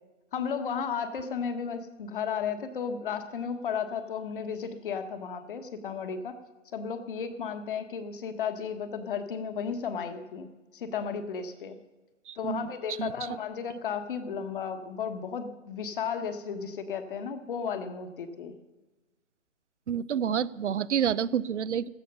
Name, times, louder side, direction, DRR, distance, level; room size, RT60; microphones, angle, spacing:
voice 1, 0.3-6.4 6.7-11.8 12.4-18.5, left 6 dB, 45° left, 8 dB, 1.4 m, -34 dB
voice 2, 12.3-13.1 19.9-21.9, right 8 dB, 65° right, 20 dB, 0.7 m, -29 dB
16.0 x 13.0 x 5.5 m, 1.2 s
hypercardioid pair, 155°, 38 cm